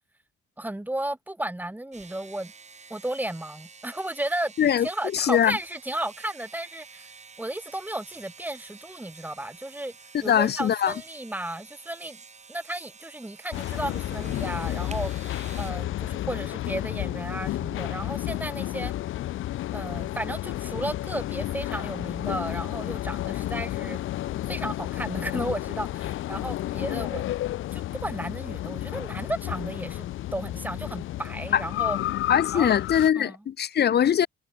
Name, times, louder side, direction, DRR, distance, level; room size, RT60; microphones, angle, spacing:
voice 1, 0.6-2.5 2.9-4.5 4.8-7.1 7.4-9.9 10.2-12.2 12.5-15.1 15.5-18.9 19.7-24.0 24.5-27.3 27.7-32.0 32.5-32.7 33.2-33.4 33.9-34.0, right 1 dB, 10° right, 2.3 m, -34 dB
sound 1, 1.9-15.7, right 5 dB, 35° right, 7.1 m, -49 dB
voice 2, 5.1-5.6 10.2-10.9 31.5-31.6 32.3-34.3, left 9 dB, 55° left, 1.2 m, -22 dB
sound 2, 13.5-33.1, left 14 dB, 85° left, 3.7 m, -31 dB
cardioid pair, 90°, 20 cm